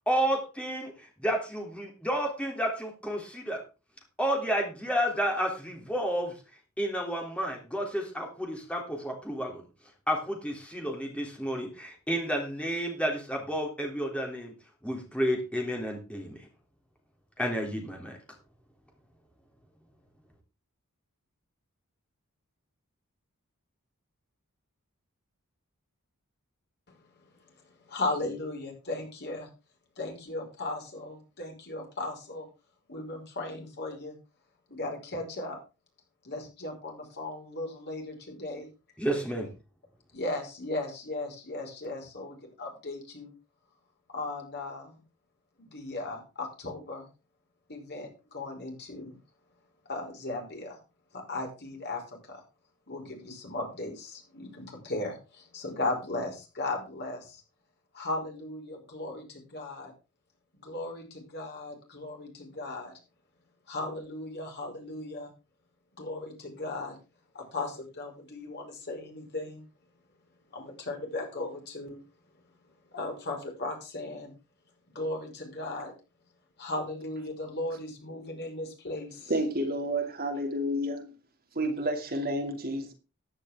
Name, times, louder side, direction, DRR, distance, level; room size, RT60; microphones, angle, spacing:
voice 1, 0.1-0.9 1.2-3.6 4.2-6.3 6.8-9.6 10.1-14.5 14.8-16.4 17.4-18.2 39.0-39.5, equal, 5° left, 1 dB, 3.3 m, -31 dB
voice 2, 27.7-29.5 30.0-32.5 32.9-34.2 34.7-35.6 36.2-38.7 40.1-43.3 44.1-45.0 45.6-47.1 47.7-49.2 49.9-50.8 51.1-52.4 52.9-57.4 57.9-59.9 60.5-62.9 63.7-65.3 66.0-67.0 67.3-69.7 70.5-72.0 72.9-74.3 75.0-75.9 76.6-79.3, left 2 dB, 50° left, 1 dB, 5.2 m, -37 dB
voice 3, 79.3-81.2 81.5-82.9, right 1 dB, 45° right, 4 dB, 2.7 m, -30 dB
14.5 x 10.0 x 3.7 m, 0.31 s
head